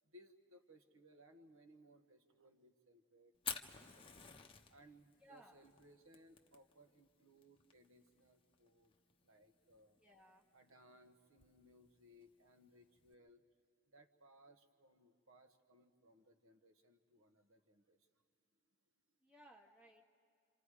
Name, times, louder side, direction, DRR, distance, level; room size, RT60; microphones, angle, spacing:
voice 1, 0.0-4.1 4.7-8.9 9.2-10.0 10.5-13.4 13.9-18.1, equal, 75° right, 7 dB, 1.2 m, -66 dB
Fire, 3.4-13.1, left 7 dB, 25° left, 0.9 m, -53 dB
voice 2, 5.2-5.6 10.0-10.5 19.2-20.0, equal, 5° right, 0 dB, 1.6 m, -62 dB
27.0 x 26.5 x 4.9 m, 2.3 s
head